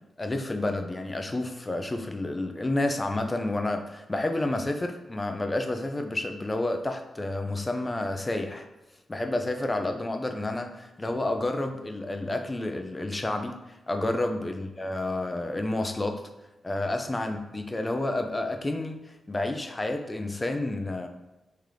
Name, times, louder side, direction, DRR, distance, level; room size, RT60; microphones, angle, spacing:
voice 1, 0.2-8.6 9.1-13.5 13.9-16.2 16.6-19.0 19.3-21.1, left 2 dB, 25° left, 5 dB, 0.5 m, -30 dB
3.3 x 2.8 x 3.7 m, 1.0 s
cardioid pair, 55°, 0 cm